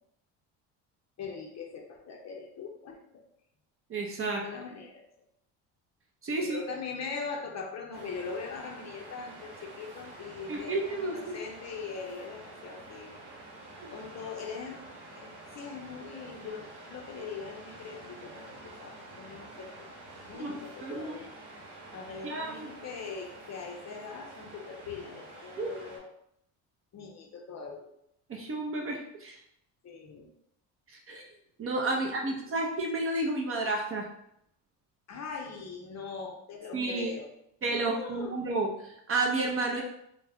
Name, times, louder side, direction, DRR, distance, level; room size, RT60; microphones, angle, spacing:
voice 1, 1.2-3.2 4.4-5.0 6.4-13.1 13.9-14.8 15.1-19.9 20.3-21.3 21.9-26.1 26.9-27.9 29.8-30.3 31.9-32.6 35.1-37.3 37.7-38.4, left 5 dB, 40° left, 2 dB, 0.5 m, -41 dB
voice 2, 3.9-4.4 6.2-6.6 10.5-11.4 13.8-13.9 20.4-21.1 22.2-22.7 25.6-25.7 28.3-29.4 30.9-31.2 31.6-34.1 36.7-37.1 37.6-39.8, right 2 dB, 30° right, 1 dB, 0.5 m, -31 dB
Waves surf, 7.9-26.0, right 2 dB, 65° right, 1.1 m, -48 dB
2.3 x 2.1 x 3.4 m, 0.74 s
supercardioid pair, 90°, 43 cm